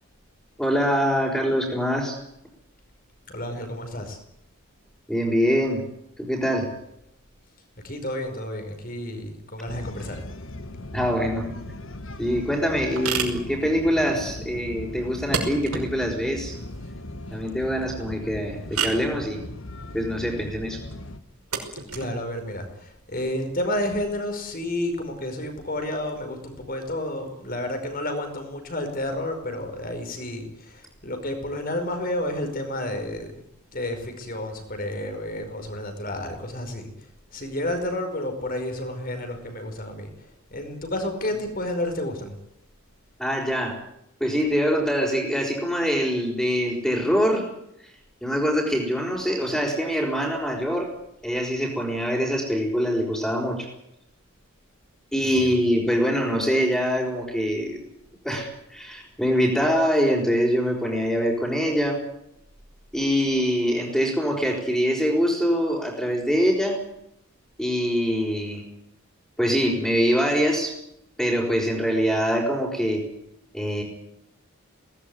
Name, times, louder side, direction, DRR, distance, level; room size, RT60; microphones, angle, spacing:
voice 1, 0.6-2.2 5.1-5.8 6.2-6.7 10.9-11.6 12.2-16.5 17.3-19.4 19.9-20.8 43.2-43.8 44.2-47.5 48.2-50.9 51.2-53.7 55.1-57.8 58.2-62.0 62.9-66.8 67.6-68.6 69.4-70.7 71.2-73.0 73.5-73.8, equal, 5° left, -6 dB, 5.2 m, -24 dB
voice 2, 3.3-4.2 7.8-10.2 21.9-33.4 33.7-36.9 37.3-42.3 55.2-55.6, left 1 dB, 40° left, 6 dB, 5.1 m, -31 dB
sound 1, 9.7-21.2, left 1 dB, 60° left, 1.6 m, -38 dB
sound 2, 11.7-24.0, right 5 dB, 85° right, 5.8 m, -35 dB
21.0 x 19.0 x 9.6 m, 0.78 s
head